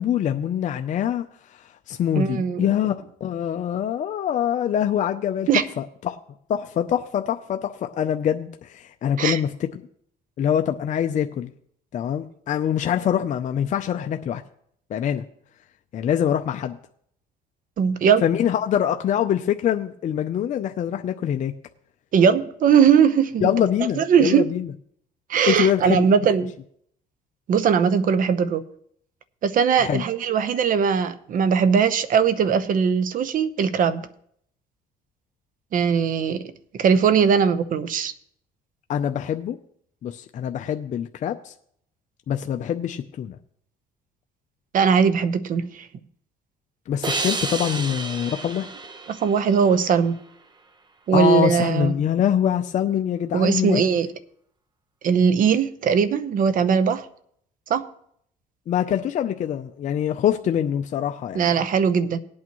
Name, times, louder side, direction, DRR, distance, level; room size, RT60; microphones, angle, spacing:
voice 1, 0.0-2.9 3.2-5.5 5.8-6.2 6.5-9.8 10.4-11.5 11.9-14.4 14.9-15.2 15.9-16.8 18.2-21.5 23.4-24.7 25.5-26.0 29.8-30.0 38.9-39.6 40.0-41.5 42.3-43.4 46.9-48.7 51.1-53.8 58.7-61.5, left 9 dB, 45° left, 0.6 m, -24 dB
voice 2, 2.2-2.6 5.5-5.6 9.2-9.4 17.8-18.2 22.1-23.5 24.0-24.5 25.3-26.5 27.5-28.6 29.4-34.0 35.7-36.4 36.8-38.1 44.7-45.9 49.1-50.2 51.1-51.9 53.3-54.1 55.0-57.1 57.7-57.8 61.3-62.2, right 7 dB, 55° right, 0.9 m, -20 dB
sound 1, 47.0-50.3, right 3 dB, 25° right, 0.9 m, -31 dB
18.5 x 8.6 x 3.1 m
cardioid pair, 110°, 17 cm